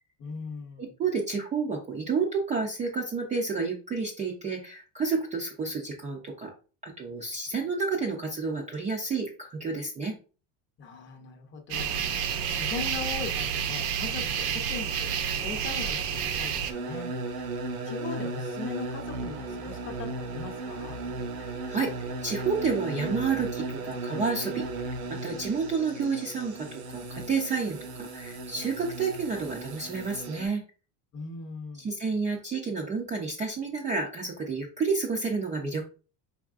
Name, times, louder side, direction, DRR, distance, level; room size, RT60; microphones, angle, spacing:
voice 1, 0.2-0.9 10.8-17.6 17.9-21.0 31.1-31.9, left 5 dB, 30° left, 5 dB, 0.6 m, -40 dB
voice 2, 0.8-6.5 6.8-10.1 21.4-21.9 22.2-24.6 25.1-30.6 31.8-35.8, right 4 dB, 20° right, -1 dB, 0.3 m, -30 dB
sound 1, 11.7-16.7, right 8 dB, 60° right, 0.7 m, -29 dB
sound 2, 16.7-30.5, right 3 dB, 85° right, 1.1 m, -36 dB
5.1 x 3.5 x 2.4 m, 0.36 s
cardioid pair, 165°, 42 cm